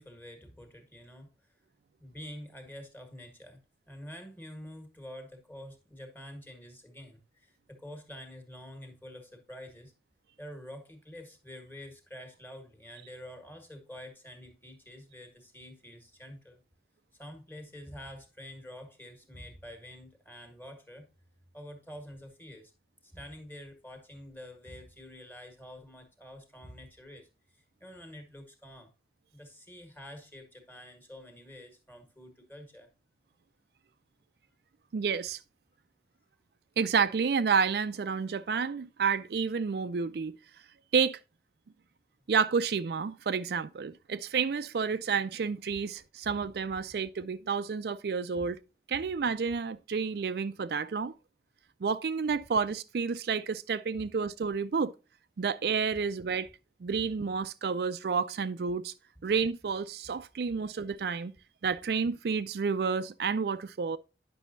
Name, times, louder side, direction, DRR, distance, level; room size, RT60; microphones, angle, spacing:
voice 1, 0.0-1.6 2.0-3.6 3.9-9.9 10.4-16.6 17.2-21.1 21.5-22.7 23.0-28.9 29.3-32.9 48.3-48.5 54.0-54.1 55.9-56.0 56.9-57.0 60.5-60.6, equal, 10° left, 1.6 m, -47 dB
voice 2, 34.9-35.4 36.8-40.4 40.9-41.2 42.3-48.6 48.9-51.1 51.8-54.9 55.4-56.5 56.8-58.9 59.2-61.3 61.6-64.0, right 5 dB, 65° right, 0.4 m, -30 dB
10.0 x 6.1 x 2.6 m
head